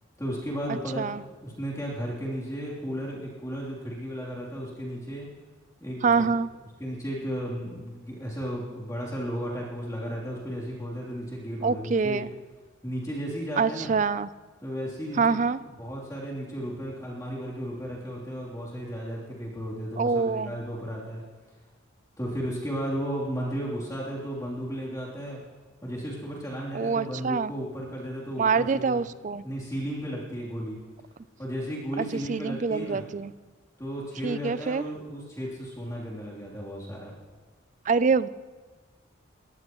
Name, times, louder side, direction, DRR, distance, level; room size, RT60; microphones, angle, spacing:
voice 1, 0.2-5.3 5.8-6.2 6.8-12.2 12.8-13.9 14.6-15.4 15.8-21.2 22.2-25.4 25.8-29.0 29.4-30.8 31.4-33.0 33.8-37.1, equal, 15° left, -6 dB, 3.2 m, -34 dB
voice 2, 6.0-6.5 11.6-12.3 13.6-14.3 15.1-15.6 20.0-20.5 26.7-27.5 28.4-29.4 32.0-33.3 34.2-34.8 37.9-38.3, right 5 dB, 40° right, 16 dB, 0.4 m, -25 dB
22.0 x 18.0 x 3.1 m, 1.3 s
head